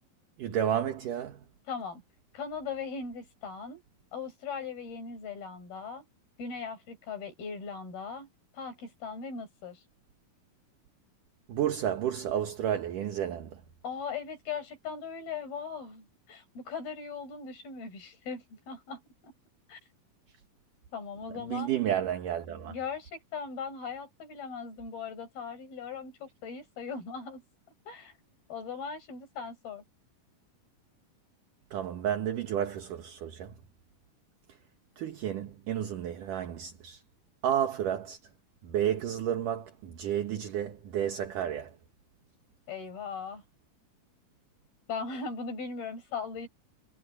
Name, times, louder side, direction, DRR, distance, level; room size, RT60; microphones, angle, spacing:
voice 1, 0.4-1.4 11.5-13.6 21.5-22.7 31.7-33.5 35.0-37.0 37.4-38.2 38.6-41.7, right 10 dB, 65° right, 2.8 m, -31 dB
voice 2, 1.7-2.0 2.3-3.8 4.1-6.0 6.4-8.3 8.5-9.8 13.8-19.3 19.7-19.8 20.9-21.8 22.7-27.4 27.9-28.1 28.5-29.8 42.7-43.4 44.9-46.5, left 5 dB, 80° left, 7.9 m, -39 dB
omnidirectional pair, 4.2 m